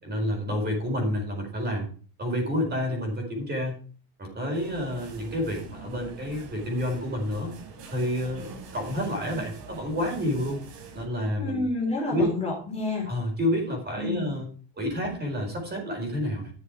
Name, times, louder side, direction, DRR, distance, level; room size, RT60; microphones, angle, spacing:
voice 1, 0.0-1.9 2.2-3.7 4.2-7.5 7.9-10.6 10.9-11.7 12.1-12.3 13.1-14.4 14.8-16.5, left 1 dB, 20° right, 1 dB, 4.5 m, -29 dB
sound 1, 4.5-11.1, right 4 dB, 75° right, 4.3 m, -44 dB
voice 2, 11.4-13.1 14.0-14.3, left 2 dB, 15° left, -4 dB, 4.0 m, -29 dB
11.5 x 6.9 x 4.8 m, 0.40 s
cardioid pair, 165°, 45 cm